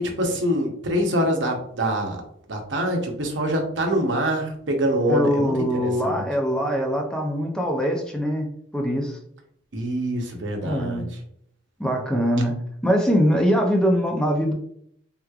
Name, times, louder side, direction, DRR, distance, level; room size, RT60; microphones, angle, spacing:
voice 1, 0.0-2.2 2.5-6.2 9.7-11.1, equal, 70° right, 2 dB, 0.8 m, -25 dB
voice 2, 5.1-8.5 8.7-9.2 10.6-11.0 11.8-12.5 12.8-14.5, equal, 5° left, 1 dB, 0.5 m, -22 dB
3.5 x 3.0 x 2.3 m, 0.67 s
head